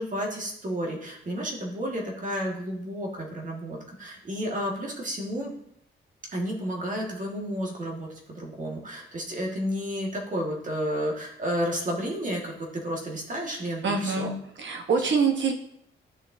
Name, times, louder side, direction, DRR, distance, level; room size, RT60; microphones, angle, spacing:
voice 1, 0.0-5.5 6.3-14.3, equal, 40° right, -1 dB, 1.7 m, -31 dB
voice 2, 13.8-14.3 14.6-15.5, right 5 dB, 65° right, 4 dB, 1.1 m, -24 dB
10.5 x 6.5 x 2.7 m, 0.73 s
wide cardioid pair, 140°, 21 cm